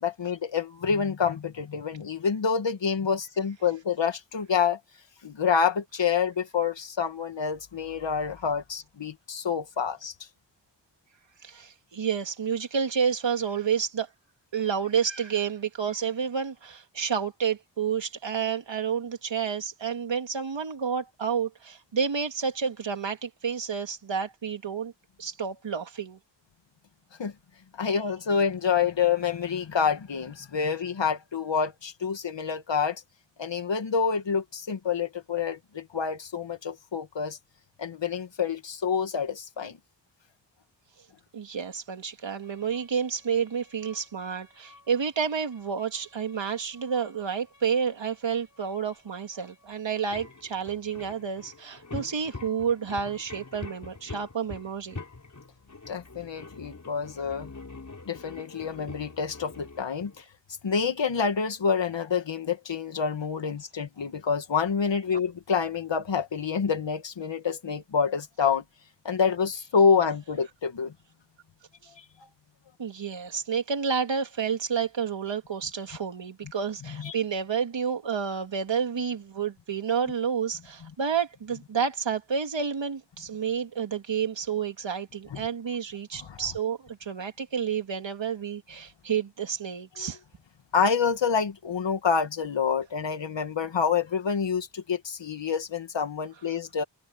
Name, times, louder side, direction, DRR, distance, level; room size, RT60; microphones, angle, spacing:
voice 1, 0.0-4.8 5.2-10.1 27.2-27.3 27.8-33.0 33.4-37.4 37.8-39.8 55.9-57.5 58.1-60.2 60.6-68.6 69.0-70.9 76.9-77.1 85.3-85.4 86.2-86.4 90.0-90.1 90.7-96.8, left 6 dB, 80° left, 2.1 m, -27 dB
voice 2, 11.4-14.1 14.5-24.9 25.2-26.2 41.3-55.0 72.8-90.2, right 6 dB, 90° right, 2.9 m, -30 dB
sound 1, 42.4-60.2, left 3 dB, 40° left, 6.9 m, -46 dB
wide cardioid pair, 110°, 43 cm